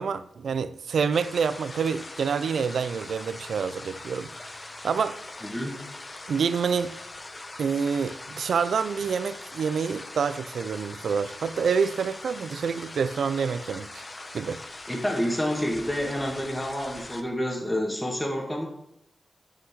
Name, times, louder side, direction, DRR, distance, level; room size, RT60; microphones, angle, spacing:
voice 1, 0.0-4.3 4.8-5.2 6.3-6.9 7.6-14.0 14.3-14.6, right 6 dB, 85° right, 0.3 m, -27 dB
sound 1, 1.1-17.2, left 2 dB, 35° left, 0.8 m, -42 dB
voice 2, 5.4-5.8 14.9-18.7, equal, 10° left, 1.7 m, -28 dB
5.8 x 5.7 x 5.7 m
cardioid pair, 60°, 0 cm